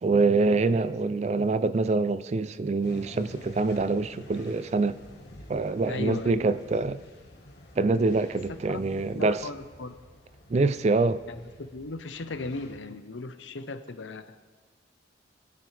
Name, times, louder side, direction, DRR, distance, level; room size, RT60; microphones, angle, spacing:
voice 1, 0.0-5.0 5.5-7.0 7.8-9.5 10.5-11.2, right 3 dB, 35° right, 0.3 m, -25 dB
sound 1, 2.8-12.8, left 1 dB, 65° left, 1.5 m, -50 dB
voice 2, 5.9-6.6 8.7-8.8 9.1-9.9 11.3-14.4, left 3 dB, 85° left, 0.8 m, -37 dB
22.0 x 9.5 x 3.4 m
head